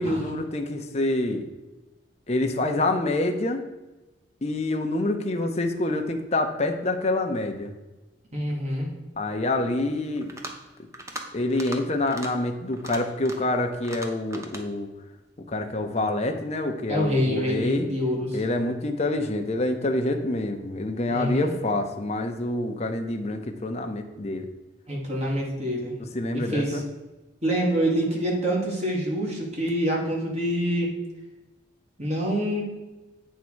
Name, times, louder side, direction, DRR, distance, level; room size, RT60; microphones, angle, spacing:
voice 1, 0.0-1.4 2.3-3.6 4.4-7.7 9.2-10.3 11.3-14.9 15.5-17.9 18.3-24.5 26.1-26.8, left 2 dB, 35° left, 4 dB, 0.7 m, -27 dB
voice 2, 8.3-8.9 16.9-18.4 21.1-21.5 24.9-25.9 26.3-26.8 27.4-30.9 32.0-32.6, equal, 35° right, -2 dB, 1.7 m, -26 dB
sound 1, 10.2-10.6 10.9-11.2 11.5-11.8 12.1-12.3 12.7-13.5 13.8-14.6, right 1 dB, 15° right, 0.8 m, -38 dB
8.3 x 3.7 x 6.2 m, 1.1 s
head